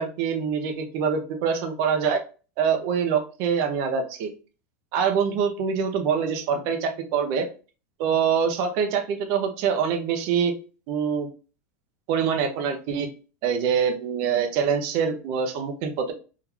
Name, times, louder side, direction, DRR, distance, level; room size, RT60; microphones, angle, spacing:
voice 1, 0.0-2.2 2.6-4.3 4.9-7.5 8.0-10.5 10.9-11.3 12.1-13.1 13.4-16.1, right 6 dB, 35° right, 5 dB, 0.5 m, -24 dB
3.6 x 2.3 x 2.9 m, 0.35 s
supercardioid pair, 175°, 8 cm